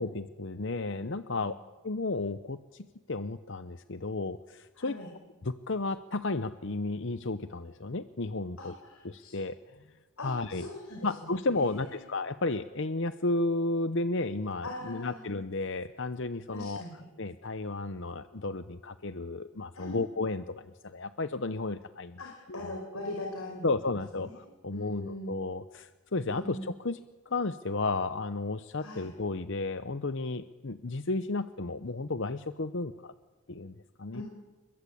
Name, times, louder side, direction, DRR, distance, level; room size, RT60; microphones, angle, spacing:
voice 1, 0.0-1.5 1.8-5.0 5.4-8.7 9.0-9.6 10.2-10.7 11.0-16.8 17.2-22.7 23.6-27.0 27.3-33.1 33.5-34.2, left 3 dB, 55° left, 12 dB, 0.8 m, -33 dB
voice 2, 4.8-5.1 8.6-9.3 10.2-11.3 11.6-11.9 14.6-15.2 16.5-17.0 19.7-20.0 22.2-23.7 24.1-24.4 24.7-25.3 26.3-26.7 28.8-29.1 34.1-34.2, left 1 dB, 80° left, 1 dB, 5.3 m, -41 dB
29.5 x 22.5 x 8.6 m, 1.2 s
head